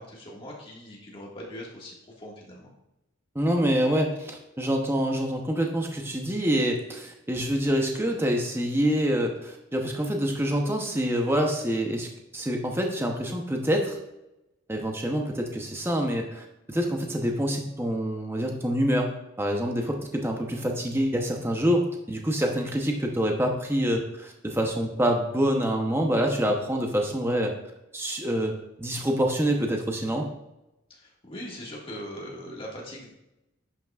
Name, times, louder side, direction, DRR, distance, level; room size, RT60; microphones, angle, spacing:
voice 1, 0.0-2.7 30.9-33.1, equal, 25° left, -4 dB, 1.7 m, -41 dB
voice 2, 3.3-14.0 14.7-19.1 19.4-27.6 27.9-30.3, equal, 10° right, 2 dB, 0.7 m, -26 dB
10.5 x 5.8 x 2.3 m, 0.91 s
head